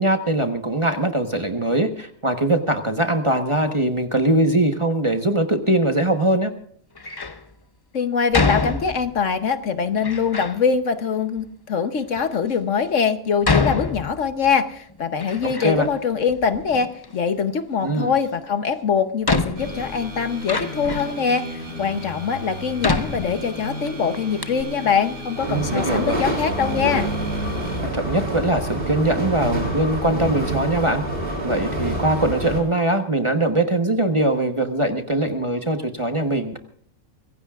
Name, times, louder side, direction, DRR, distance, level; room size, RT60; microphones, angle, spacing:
voice 1, 0.0-6.5 15.4-15.9 17.8-18.1 25.5-26.2 27.8-31.0 31.4-36.6, right 1 dB, 25° right, 5 dB, 1.1 m, -21 dB
Door, 6.9-7.4 8.3-9.3 10.0-10.6 11.4-11.5 12.2-12.3 13.4-14.6 14.9-16.0 16.3-17.1 18.5-18.6 19.2-21.2 21.9-22.0 22.8-23.9 24.1-24.2 24.4-24.6, left 3 dB, 30° left, 0.5 m, -26 dB
voice 2, 7.9-27.1, left 6 dB, 60° left, 9 dB, 1.3 m, -23 dB
sound 1, 19.6-27.8, equal, 85° right, 7.0 m, -33 dB
sound 2, 25.4-32.6, right 1 dB, 40° right, 3.1 m, -27 dB
24.5 x 16.0 x 2.4 m, 0.62 s
omnidirectional pair, 1.5 m